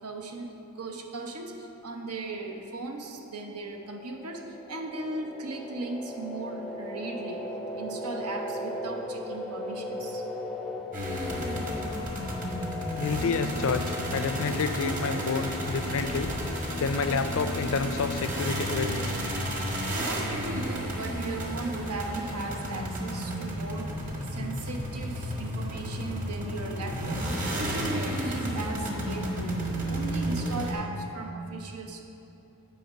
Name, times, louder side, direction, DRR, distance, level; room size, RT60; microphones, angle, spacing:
voice 1, 0.0-7.5 7.7-10.2 19.5-24.0 24.2-27.3 27.6-29.6 29.8-32.0, right 2 dB, 90° right, 3 dB, 0.9 m, -37 dB
sound 1, 3.8-18.3, left 2 dB, ahead, 0.5 m, -38 dB
sound 2, 10.9-30.7, equal, 35° right, 1.2 m, -32 dB
voice 2, 13.0-16.3 16.8-19.1, left 4 dB, 65° left, 9 dB, 0.5 m, -29 dB
9.2 x 5.0 x 6.4 m, 2.8 s
head